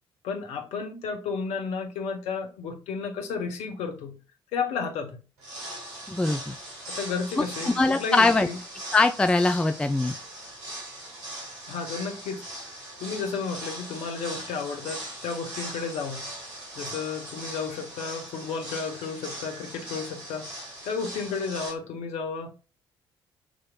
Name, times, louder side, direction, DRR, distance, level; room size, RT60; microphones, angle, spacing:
voice 1, 0.2-4.2 4.5-5.2 6.8-8.6 11.7-12.4 13.0-16.3 16.8-20.5 20.8-22.5, left 5 dB, 55° left, 0.9 m, -32 dB
sound 1, 5.4-21.7, right 1 dB, 65° right, 1.9 m, -40 dB
voice 2, 6.1-6.5 7.7-8.5 8.9-10.1, left 3 dB, 5° left, 0.4 m, -22 dB
6.1 x 3.0 x 2.3 m
figure-of-eight pair, 45°, 13 cm